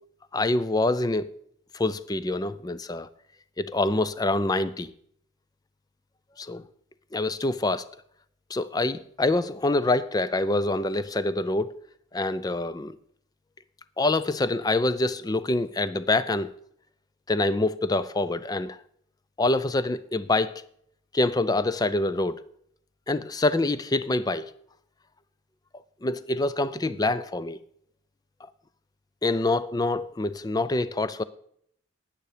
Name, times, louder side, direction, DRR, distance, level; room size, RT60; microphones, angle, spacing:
voice 1, 0.3-1.3 1.7-3.1 3.6-4.9 6.4-6.6 7.1-7.9 8.5-11.8 12.1-13.0 14.0-16.5 17.3-18.8 19.4-20.6 21.1-22.4 23.1-24.5 26.0-27.6 29.2-31.2, left 2 dB, 20° left, 0.4 m, -26 dB
10.0 x 9.5 x 5.0 m
head